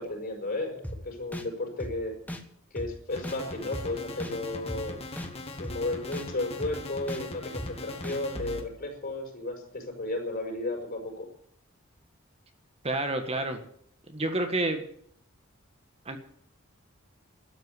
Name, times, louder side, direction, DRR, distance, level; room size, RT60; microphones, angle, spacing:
voice 1, 0.0-2.1 2.7-5.0 5.6-11.3, left 2 dB, 45° left, 3 dB, 5.7 m, -34 dB
sound 1, 0.8-1.0 1.3-1.5 1.8-1.9 2.3-2.4 2.8-2.9 3.2-3.4 3.7-3.9 4.2-4.3 4.7-4.8 5.2-5.3 5.6-5.8 6.1-6.3 6.6-6.7 7.1-7.2 7.6-7.7 8.0-8.2, equal, 10° left, 1.7 m, -36 dB
sound 2, 3.1-8.6, left 2 dB, 30° left, 2.3 m, -40 dB
voice 2, 12.8-13.6 14.1-14.9 16.0-16.2, right 2 dB, 30° right, 6 dB, 1.6 m, -29 dB
13.0 x 9.3 x 9.5 m, 0.64 s
head